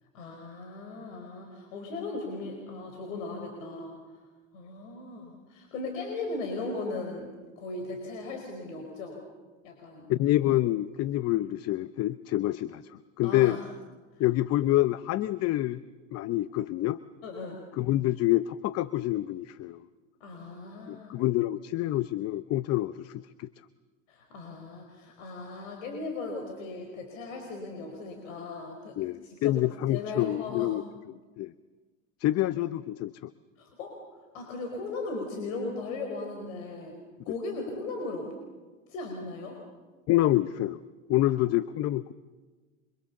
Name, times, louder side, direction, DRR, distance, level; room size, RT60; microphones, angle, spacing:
voice 1, 0.1-4.0 4.5-7.3 7.6-9.2 9.6-10.1 13.2-13.6 14.1-14.2 17.2-17.6 20.2-21.1 24.1-28.9 29.2-29.5 29.9-30.8 33.6-34.0 34.3-36.9 37.2-38.3 38.9-39.6, left 3 dB, 75° left, 3 dB, 5.0 m, -37 dB
voice 2, 10.1-12.8 13.2-13.6 14.2-15.8 16.1-17.0 17.8-19.8 20.9-23.5 29.0-30.8 31.4-31.5 32.2-33.1 40.1-40.8 41.1-42.1, left 15 dB, 40° left, 15 dB, 0.7 m, -27 dB
29.5 x 25.0 x 7.2 m, 1.3 s
hypercardioid pair, 100°, 39 cm